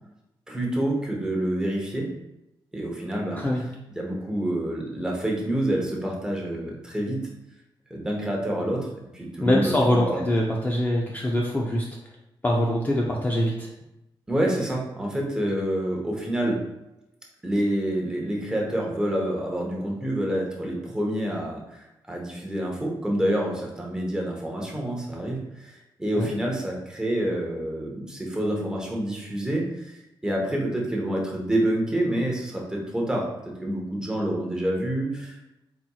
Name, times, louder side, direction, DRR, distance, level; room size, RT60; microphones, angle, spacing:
voice 1, 0.5-2.1 2.7-3.4 4.0-7.2 7.9-8.9 9.1-10.2 14.3-16.7 17.4-35.4, right 1 dB, 10° right, -2 dB, 0.8 m, -27 dB
voice 2, 9.4-11.9 12.4-13.7 26.2-26.3, left 1 dB, 20° left, -3 dB, 0.4 m, -23 dB
4.2 x 4.2 x 2.3 m, 0.91 s
wide cardioid pair, 145°, 9 cm